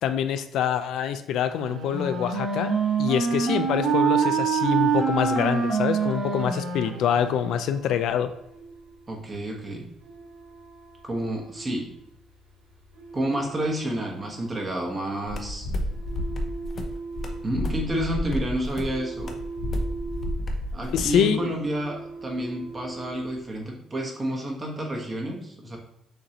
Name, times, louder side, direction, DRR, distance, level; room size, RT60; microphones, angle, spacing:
voice 1, 0.0-2.7 3.0-8.3 20.9-21.5, left 9 dB, 75° left, 10 dB, 0.3 m, -25 dB
Wind instrument woodwind instrument, 1.5-7.7, right 6 dB, 60° right, 0.9 m, -25 dB
sound 1, 7.1-23.6, right 4 dB, 75° right, 1.5 m, -42 dB
voice 2, 9.1-9.9 11.0-11.9 13.1-15.7 17.4-19.3 20.7-25.8, right 1 dB, 25° right, 0 dB, 1.3 m, -30 dB
sound 2, 15.3-21.2, left 1 dB, 45° left, 0.7 m, -31 dB
6.5 x 2.6 x 2.9 m, 0.78 s
cardioid pair, 90°, 0 cm